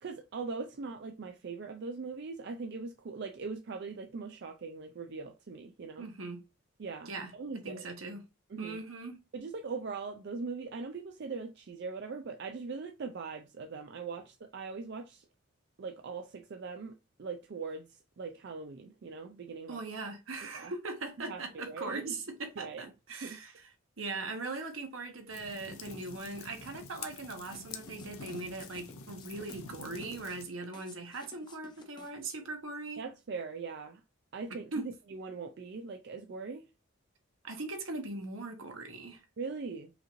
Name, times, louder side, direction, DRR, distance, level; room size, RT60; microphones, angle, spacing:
voice 1, 0.0-6.1 6.8-7.8 8.5-8.8 9.3-15.2 15.8-17.9 18.2-19.8 20.5-20.7 21.3-22.2 22.6-22.8 23.2-23.4 33.0-34.0 34.3-36.6 39.4-39.9, right 4 dB, 55° right, 0.4 m, -41 dB
voice 2, 6.0-6.4 7.1-8.2 8.6-9.2 19.7-23.7 24.0-33.0 34.5-34.9 37.4-39.2, right 3 dB, 75° right, 1.1 m, -40 dB
sound 1, 25.3-30.5, left 5 dB, 90° left, 0.6 m, -47 dB
sound 2, 27.4-32.3, left 3 dB, 20° left, 0.6 m, -55 dB
4.9 x 2.6 x 3.0 m
head